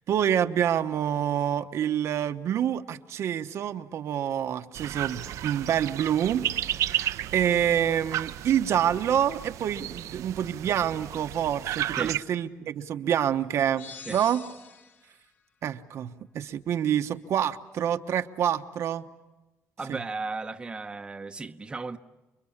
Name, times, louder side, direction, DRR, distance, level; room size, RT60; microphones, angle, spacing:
voice 1, 0.1-6.4 6.8-7.1 7.3-14.4 15.6-19.0 19.9-20.0, right 9 dB, 65° right, 1.1 m, -27 dB
sound 1, 4.7-12.2, right 12 dB, 80° right, 0.8 m, -33 dB
sound 2, 13.8-15.1, left 6 dB, 40° left, 1.9 m, -45 dB
voice 2, 19.8-22.0, right 3 dB, 15° right, 0.9 m, -35 dB
29.5 x 22.5 x 7.2 m
cardioid pair, 145°, 5 cm